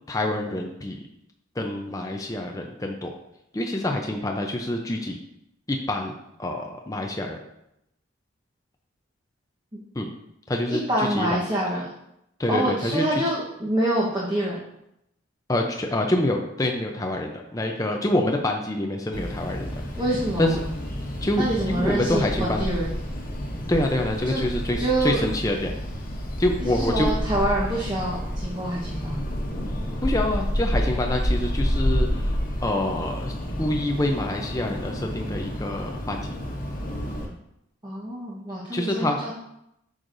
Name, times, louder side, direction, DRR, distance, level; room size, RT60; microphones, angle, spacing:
voice 1, 0.1-1.0 1.6-3.1 3.5-5.2 5.7-6.1 6.4-7.4 9.9-10.1 10.5-11.4 12.4-13.0 15.5-19.8 20.4-20.6 21.2-22.7 23.7-25.7 26.4-27.1 30.0-32.3 32.6-36.3 38.7-39.2, left 1 dB, 15° left, 2 dB, 0.5 m, -26 dB
voice 2, 10.7-11.8 12.5-14.6 20.0-20.6 21.3-22.9 24.2-24.4 24.8-25.2 26.6-29.2 37.8-39.3, right 1 dB, 20° right, -6 dB, 1.1 m, -26 dB
sound 1, 19.1-37.3, equal, 40° left, 1.3 m, -29 dB
8.7 x 6.4 x 2.6 m, 0.82 s
head